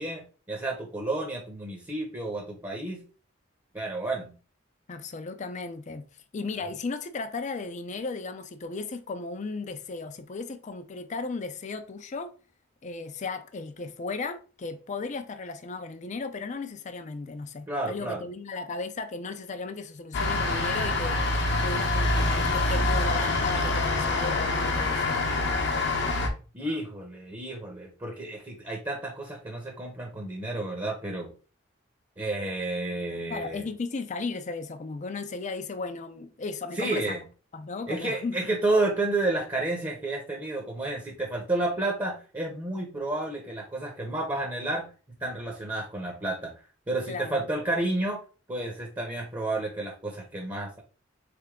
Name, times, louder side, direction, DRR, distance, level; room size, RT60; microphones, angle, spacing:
voice 1, 0.0-3.0 3.7-4.3 17.7-18.2 26.5-31.3 32.2-33.6 36.7-37.2 37.9-44.9 45.2-46.5 46.9-48.2 48.5-50.8, right 2 dB, 20° right, 0.9 m, -31 dB
voice 2, 4.9-6.0 6.3-12.3 12.8-21.2 21.6-25.3 33.3-37.2 37.5-38.4 47.1-47.4, left 3 dB, 40° left, 0.5 m, -35 dB
sound 1, 20.1-26.3, left 2 dB, 60° left, 0.9 m, -26 dB
3.7 x 3.4 x 3.6 m
head